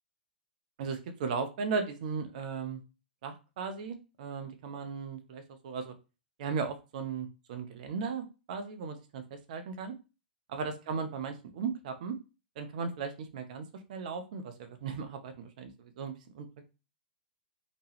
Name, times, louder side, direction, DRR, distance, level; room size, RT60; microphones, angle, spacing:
voice 1, 0.8-2.8 3.2-5.9 6.4-9.9 10.5-12.1 12.6-16.5, right 5 dB, 50° right, 7 dB, 0.6 m, -37 dB
3.0 x 2.2 x 3.1 m, 0.30 s
figure-of-eight pair, 105°, 5 cm